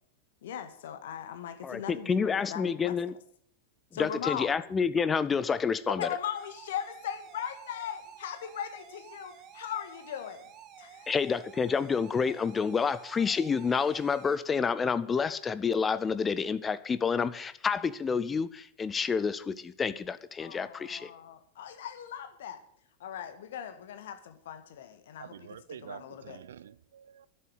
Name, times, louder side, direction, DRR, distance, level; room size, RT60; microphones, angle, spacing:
voice 1, 0.4-3.0 3.9-4.5 5.9-10.5 10.8-11.1 20.4-22.6 23.0-26.4, left 9 dB, 60° left, 1.6 m, -39 dB
voice 2, 1.6-3.1 4.0-6.1 11.1-21.1, left 5 dB, 20° left, 0.6 m, -29 dB
sound 1, 6.4-14.4, right 8 dB, 30° right, 1.9 m, -51 dB
voice 3, 25.2-27.3, right 9 dB, 65° right, 0.5 m, -47 dB
11.0 x 8.3 x 9.0 m
figure-of-eight pair, 90°, 0 cm